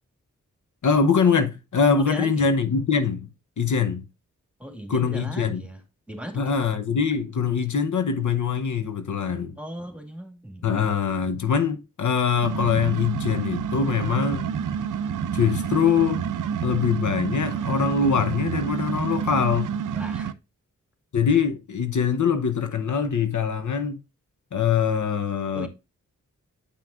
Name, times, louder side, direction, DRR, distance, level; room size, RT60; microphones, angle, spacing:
voice 1, 0.8-3.3 3.6-4.0 4.9-5.6 6.3-9.6 10.6-14.5 15.3-16.2 16.6-19.8 21.1-24.0 24.5-25.7, left 6 dB, 70° left, 0.9 m, -23 dB
voice 2, 2.0-2.5 4.6-5.8 6.1-6.5 9.6-10.7 19.9-20.4 25.5-25.7, equal, 5° right, 2.0 m, -37 dB
sound 1, 12.4-20.3, right 7 dB, 75° right, 0.5 m, -29 dB
8.2 x 5.8 x 2.5 m
cardioid pair, 65°, 31 cm